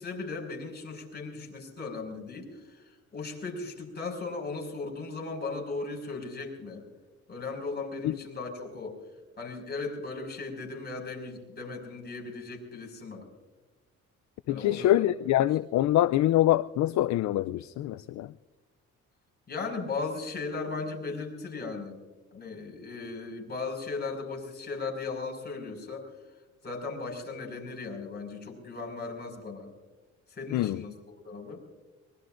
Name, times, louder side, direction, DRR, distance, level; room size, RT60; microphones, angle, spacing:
voice 1, 0.0-6.8 7.3-9.0 9.4-13.3 14.5-15.1 19.5-22.0 22.3-26.1 26.6-29.7 30.3-31.6, left 3 dB, 35° left, 1 dB, 5.4 m, -37 dB
voice 2, 14.5-18.3 30.5-30.8, left 14 dB, 70° left, 14 dB, 0.5 m, -25 dB
23.5 x 21.0 x 2.5 m, 1.2 s
cardioid pair, 90°, 30 cm